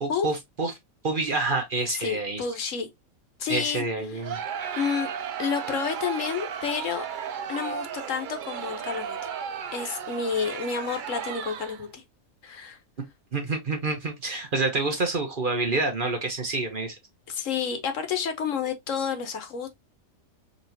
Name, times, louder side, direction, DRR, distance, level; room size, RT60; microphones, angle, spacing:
voice 1, 0.0-0.7 1.0-2.4 3.5-4.4 13.3-16.9, right 3 dB, 45° right, 0.9 m, -27 dB
voice 2, 2.0-2.9 3.4-3.8 4.1-4.2 4.7-5.1 5.4-7.0 7.5-9.2 9.7-12.0 12.4-12.8 17.3-19.8, left 6 dB, 65° left, 1.2 m, -30 dB
Crowd, 4.2-11.9, right 8 dB, 90° right, 0.4 m, -34 dB
5.2 x 3.0 x 2.6 m
omnidirectional pair, 1.5 m